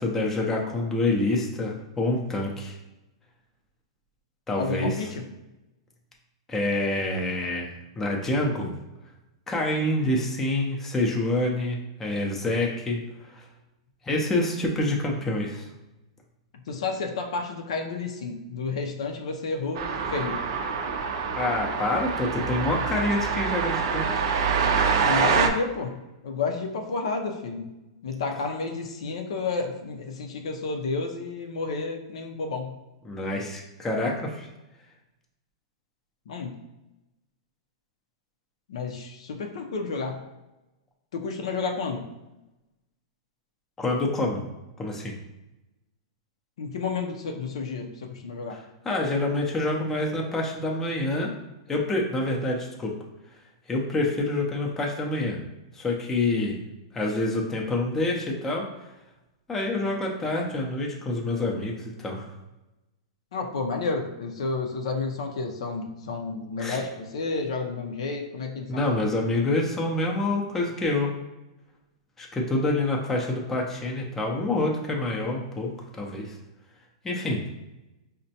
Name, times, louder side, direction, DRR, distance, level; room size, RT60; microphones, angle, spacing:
voice 1, 0.0-2.8 4.5-5.1 6.5-8.7 9.5-13.5 14.0-15.7 21.3-24.1 33.0-34.5 43.8-44.4 44.8-45.1 48.5-51.3 51.7-52.9 53.7-55.4 55.7-56.6 56.9-58.7 59.5-62.3 66.6-66.8 68.7-71.1 72.2-76.4 77.0-77.4, left 2 dB, 10° left, -1 dB, 0.5 m, -27 dB
voice 2, 4.6-5.2 16.7-20.4 25.0-27.7 28.0-32.8 36.3-36.6 38.7-40.3 41.1-42.1 46.6-48.6 63.3-68.9, left 4 dB, 75° left, 2 dB, 0.5 m, -31 dB
sound 1, 19.7-25.5, right 5 dB, 55° right, 0.4 m, -26 dB
5.1 x 2.1 x 2.8 m, 0.98 s
hypercardioid pair, 150°, 3 cm